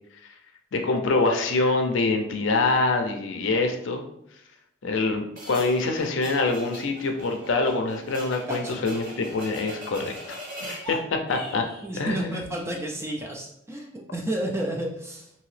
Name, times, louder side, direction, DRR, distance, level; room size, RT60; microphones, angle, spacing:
voice 1, 0.7-4.0 4.8-10.1 10.7-11.6 12.0-12.4, left 3 dB, 65° left, 4 dB, 0.5 m, -25 dB
sound 1, 5.4-10.9, equal, 40° right, 0.9 m, -41 dB
voice 2, 8.5-8.8 11.8-15.3, right 1 dB, 15° right, 0 dB, 0.3 m, -31 dB
sound 2, 10.7-11.9, equal, 5° left, 1.2 m, -38 dB
2.8 x 2.7 x 3.2 m, 0.75 s
head